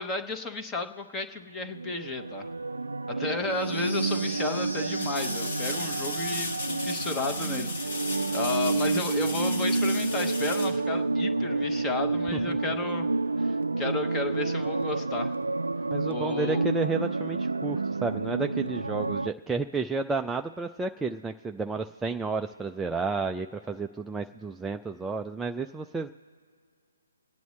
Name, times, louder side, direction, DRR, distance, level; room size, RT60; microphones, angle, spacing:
voice 1, 0.0-2.5 3.1-7.7 8.3-13.1 13.4-15.3 16.0-16.6, left 3 dB, 15° left, 6 dB, 1.0 m, -33 dB
sound 1, 1.6-19.3, right 3 dB, 80° right, 0.4 m, -29 dB
sound 2, 3.5-7.5, left 1 dB, 90° left, 1.4 m, -41 dB
sound 3, 4.9-11.5 14.4-14.5, left 3 dB, 55° left, 1.5 m, -36 dB
voice 2, 15.9-26.1, right 4 dB, 5° right, 5 dB, 0.3 m, -31 dB
27.0 x 9.2 x 3.2 m, 2.2 s
figure-of-eight pair, 135°, 0 cm